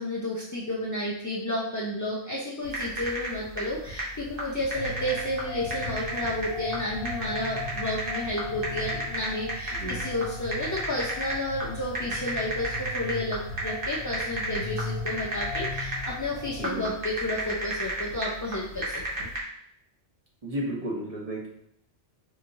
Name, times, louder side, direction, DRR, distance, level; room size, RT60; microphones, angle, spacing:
voice 1, 0.0-19.3, left 1 dB, 30° left, -6 dB, 0.3 m, -31 dB
sound 1, 2.6-19.4, right 1 dB, 50° right, 1.2 m, -34 dB
sound 2, 4.7-16.6, left 3 dB, 90° left, 0.9 m, -38 dB
voice 2, 20.4-21.5, equal, 35° right, -4 dB, 0.9 m, -32 dB
4.7 x 2.9 x 2.6 m, 0.70 s
omnidirectional pair, 1.2 m